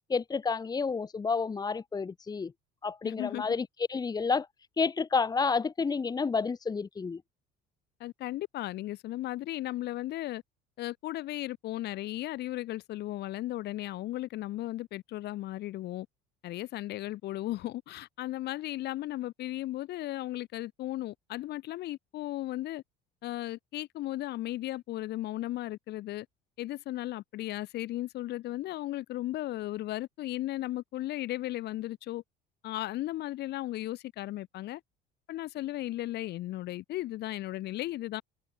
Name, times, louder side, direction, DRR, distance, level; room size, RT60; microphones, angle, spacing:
voice 1, 0.1-2.5 2.8-4.5 4.8-7.2, left 5 dB, 20° left, 1.5 m, -30 dB
voice 2, 3.0-3.4 8.0-10.4 10.8-16.1 16.4-22.8 23.2-26.3 26.6-32.2 32.6-34.8 35.3-38.2, left 15 dB, 60° left, 5.0 m, -36 dB
cardioid pair, 125°, 19 cm